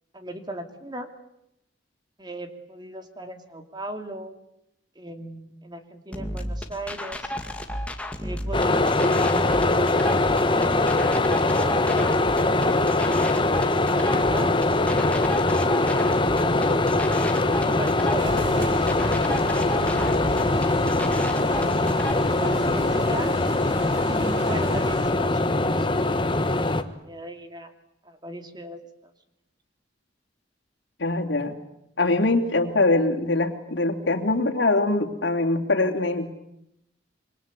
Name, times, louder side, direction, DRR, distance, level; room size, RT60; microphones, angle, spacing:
voice 1, 0.1-1.1 2.2-4.4 4.9-7.3 8.2-10.0 10.5-11.0 11.4-12.8 14.0-14.5 16.3-20.1 22.3-23.3 24.0-26.8 27.0-27.7 28.0-29.1, right 1 dB, 25° right, 6 dB, 2.8 m, -38 dB
sound 1, 6.1-22.1, left 1 dB, 5° left, 2.1 m, -34 dB
sound 2, 8.5-26.8, left 2 dB, 25° left, 1.4 m, -22 dB
sound 3, 18.2-25.1, right 2 dB, 85° right, 1.9 m, -38 dB
voice 2, 31.0-31.6 32.0-36.3, left 2 dB, 75° left, 3 dB, 3.1 m, -23 dB
27.5 x 25.0 x 8.4 m, 0.80 s
head